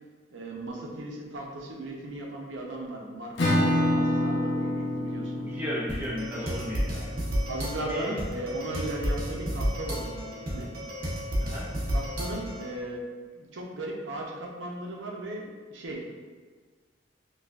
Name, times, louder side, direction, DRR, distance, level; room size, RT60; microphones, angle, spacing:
voice 1, 0.3-5.6 7.5-10.7 11.9-13.0 13.3-16.0, right 1 dB, 85° right, -1 dB, 0.7 m, -37 dB
Acoustic guitar / Strum, 3.4-8.8, left 1 dB, 75° left, 0.6 m, -29 dB
voice 2, 5.4-7.1 7.9-8.1 11.4-11.7, equal, 10° right, -7 dB, 0.5 m, -34 dB
sound 1, 5.9-12.7, equal, 50° right, 0.7 m, -32 dB
4.8 x 2.4 x 2.3 m, 1.5 s
head